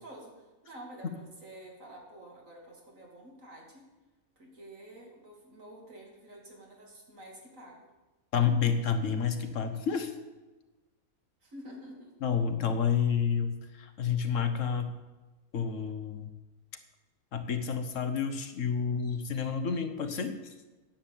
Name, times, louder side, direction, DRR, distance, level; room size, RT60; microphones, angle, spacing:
voice 1, 0.0-3.9 4.4-7.9 11.4-12.1, right 1 dB, 65° right, -1 dB, 3.1 m, -49 dB
voice 2, 8.3-10.1 12.2-14.9 15.5-16.3 17.3-20.4, left 6 dB, 60° left, 8 dB, 1.2 m, -29 dB
10.5 x 8.3 x 7.1 m, 1.2 s
omnidirectional pair, 1.5 m